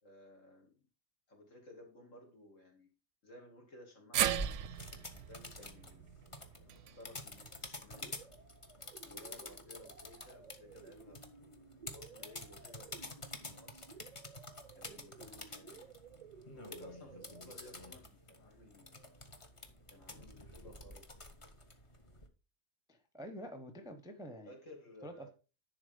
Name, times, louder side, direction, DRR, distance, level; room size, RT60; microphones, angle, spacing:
voice 1, 0.0-0.8 1.3-2.9 3.2-6.1 6.7-8.2 9.0-13.9 14.7-15.9 16.5-19.2 19.9-21.2 24.5-25.3, left 1 dB, 65° left, -1 dB, 2.9 m, -57 dB
sound 1, 4.1-8.4 8.7-8.8 10.0-10.1, right 11 dB, 70° right, 0.9 m, -38 dB
sound 2, 4.3-22.3, left 1 dB, 25° left, 1.0 m, -49 dB
sound 3, 7.9-17.5, right 6 dB, 45° right, 0.5 m, -57 dB
voice 2, 22.9-24.5 25.0-25.3, equal, 5° right, 6 dB, 0.8 m, -47 dB
10.5 x 4.0 x 5.2 m, 0.33 s
omnidirectional pair, 1.4 m